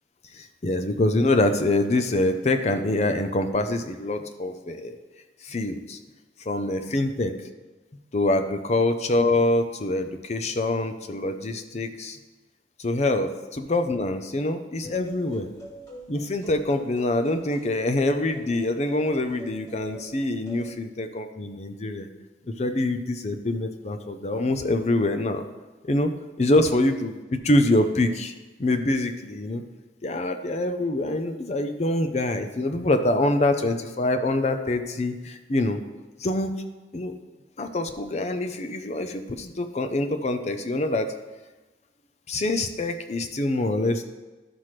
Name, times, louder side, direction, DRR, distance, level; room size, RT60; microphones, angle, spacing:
voice 1, 0.3-4.9 5.4-6.0 6.5-7.3 8.1-12.2 12.8-15.5 16.1-22.1 22.5-25.4 25.8-26.1 26.4-28.3 28.6-29.6 30.0-35.8 36.2-36.5 36.9-37.1 37.6-41.1 42.3-44.0, left 2 dB, 40° left, 8 dB, 0.6 m, -25 dB
sound 1, 14.8-20.7, right 1 dB, 20° left, 2.4 m, -45 dB
12.0 x 5.8 x 3.2 m, 1.2 s
head